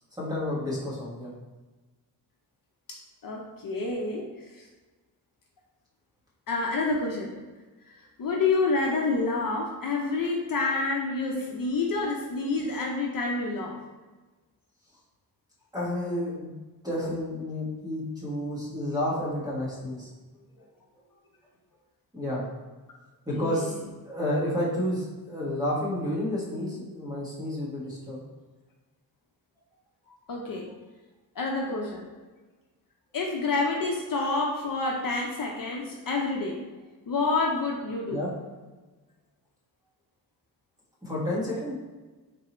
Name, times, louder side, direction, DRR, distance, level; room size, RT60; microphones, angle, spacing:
voice 1, 0.2-1.3 15.7-16.5 16.8-20.6 22.1-22.4 23.2-28.2 30.0-30.1 38.1-38.3 41.0-41.7, left 1 dB, 10° right, -7 dB, 1.4 m, -31 dB
voice 2, 2.9-4.7 6.5-7.3 8.0-13.8 23.3-23.7 30.3-30.7 31.4-32.0 33.1-36.6 37.1-38.2, left 3 dB, 55° left, -1 dB, 0.6 m, -28 dB
3.7 x 2.7 x 4.2 m, 1.2 s
wide cardioid pair, 125°, 41 cm